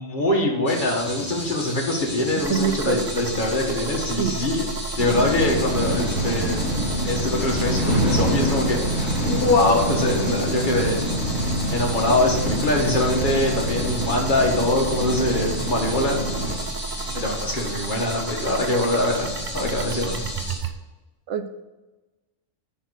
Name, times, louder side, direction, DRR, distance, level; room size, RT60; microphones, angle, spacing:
voice 1, 0.0-6.6 7.0-11.1 11.7-16.2 17.1-20.2, left 1 dB, 40° left, -1 dB, 1.8 m, -23 dB
sound 1, 0.7-20.6, equal, 10° left, 2.2 m, -34 dB
voice 2, 2.3-3.0 4.2-4.3 21.3-21.6, right 8 dB, 70° right, 9 dB, 1.1 m, -25 dB
sound 2, 2.4-20.7, right 4 dB, 45° right, 0.7 m, -34 dB
sound 3, 5.0-16.6, equal, 65° left, 2.5 m, -26 dB
9.8 x 4.2 x 6.3 m, 1.1 s
omnidirectional pair, 1.3 m